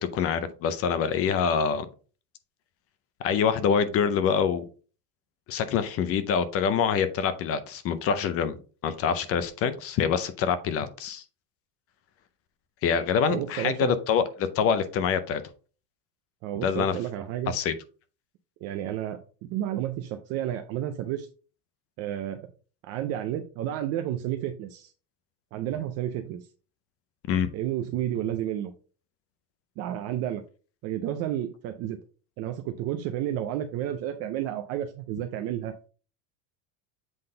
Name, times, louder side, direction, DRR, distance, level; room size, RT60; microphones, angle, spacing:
voice 1, 0.0-1.9 3.2-4.6 5.5-8.6 8.8-11.2 12.8-15.4 16.6-17.0 17.5-17.7 27.3-27.5, left 7 dB, 30° left, 12 dB, 0.5 m, -25 dB
voice 2, 13.3-13.9 16.4-17.5 18.6-21.3 22.0-22.4 22.8-24.9 25.5-26.4 27.5-28.7 29.8-30.4 30.8-32.0 32.4-35.7, right 11 dB, 35° right, 7 dB, 0.4 m, -31 dB
7.8 x 3.8 x 3.8 m, 0.37 s
cardioid pair, 160°, 50 cm